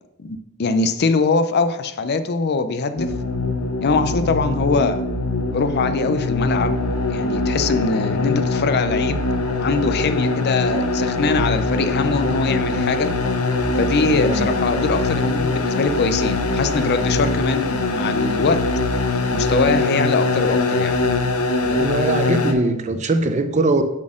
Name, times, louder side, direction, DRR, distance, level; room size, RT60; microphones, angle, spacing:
voice 1, 0.2-3.1 3.8-5.0 5.5-6.8 7.1-9.2 9.6-13.1 13.7-18.6 19.3-20.9, left 4 dB, 50° left, 10 dB, 0.5 m, -22 dB
sound 1, 3.0-22.5, left 3 dB, 85° left, 0.9 m, -22 dB
voice 2, 21.6-23.8, right 2 dB, 30° right, 9 dB, 0.5 m, -21 dB
7.2 x 4.1 x 6.3 m, 0.92 s
head